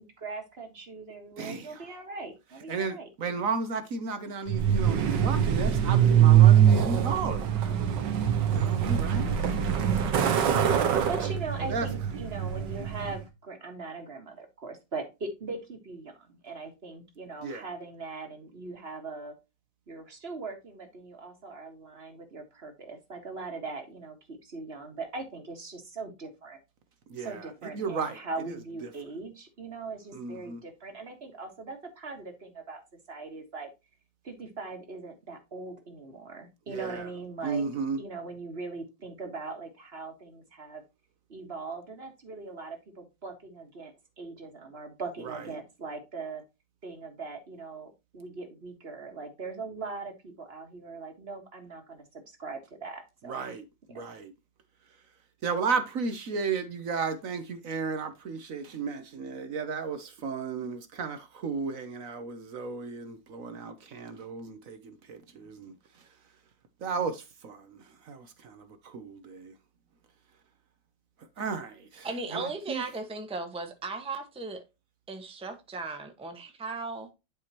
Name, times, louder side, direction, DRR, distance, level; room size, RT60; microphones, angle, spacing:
voice 1, 0.0-3.1 10.8-19.3 19.9-26.6 27.2-32.8 33.1-33.7 34.2-37.7 38.0-40.8 41.3-46.4 46.8-53.5 53.9-54.1, right 3 dB, 35° right, 1.7 m, -40 dB
voice 2, 1.4-1.8 2.7-7.4 8.5-9.3 10.5-11.0 11.7-11.9 17.4-17.6 27.1-27.4 27.7-28.2 30.1-30.6 36.7-37.1 37.4-38.0 53.3-53.6 53.9-54.3 55.4-64.8 65.1-65.7 66.8-67.8 68.1-69.5 71.4-72.1 72.3-72.8, right 5 dB, 55° right, 1.1 m, -34 dB
Truck, 4.5-13.2, right 9 dB, 75° right, 1.8 m, -23 dB
voice 3, 72.0-74.6 75.1-77.1, right 3 dB, 5° right, 0.9 m, -36 dB
10.5 x 4.8 x 2.9 m
omnidirectional pair, 2.0 m